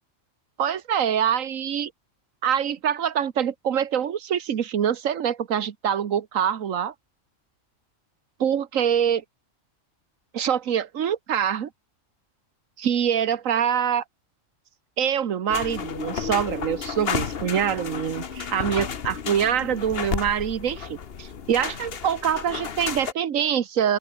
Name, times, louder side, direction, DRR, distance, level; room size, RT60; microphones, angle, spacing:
voice 1, 0.6-1.9 2.4-6.9 8.4-9.2 10.3-11.7 12.8-14.0 15.0-24.0, right 8 dB, 90° right, 1.5 m, -25 dB
sound 1, 15.5-23.1, left 7 dB, 50° left, 1.3 m, -32 dB
open air
omnidirectional pair, 1.3 m